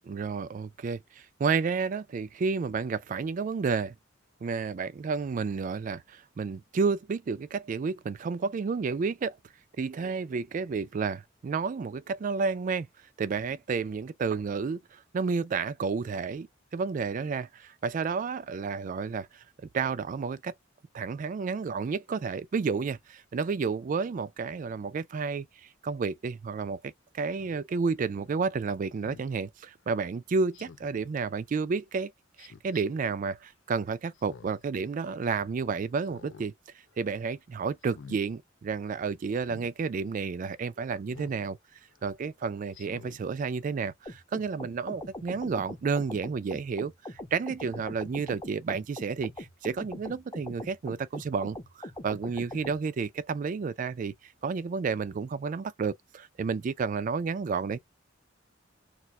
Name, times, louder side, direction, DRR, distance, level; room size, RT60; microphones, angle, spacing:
voice 1, 0.1-3.9 4.4-9.4 9.8-12.9 13.2-16.5 16.7-19.4 19.7-20.5 20.9-32.1 32.4-36.5 37.0-41.6 42.0-57.8, right 5 dB, 40° right, 0.3 m, -31 dB
Speech synthesizer, 27.4-27.6 29.0-29.3 30.5-31.0 32.4-32.8 34.1-34.7 35.1-35.2 36.0-36.5 36.9-37.2 37.8-38.2 39.4-39.7 41.1-41.4 41.9-42.0 42.7-43.2 43.7-43.8, left 5 dB, 70° left, 0.4 m, -49 dB
sound 1, 44.1-52.8, left 1 dB, 15° left, 0.6 m, -42 dB
2.4 x 2.3 x 4.0 m
head